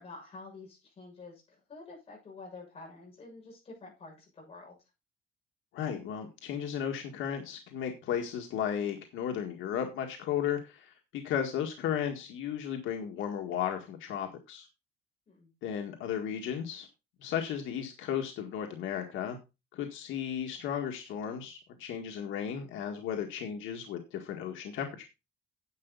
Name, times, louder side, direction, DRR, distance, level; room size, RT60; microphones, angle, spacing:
voice 1, 0.0-4.7 15.3-15.5, left 3 dB, 30° left, -2 dB, 6.8 m, -49 dB
voice 2, 5.7-14.7 15.6-16.9 17.2-19.4 19.7-25.0, left 9 dB, 85° left, 3 dB, 1.9 m, -34 dB
10.5 x 8.2 x 4.0 m, 0.26 s
cardioid pair, 170°, 20 cm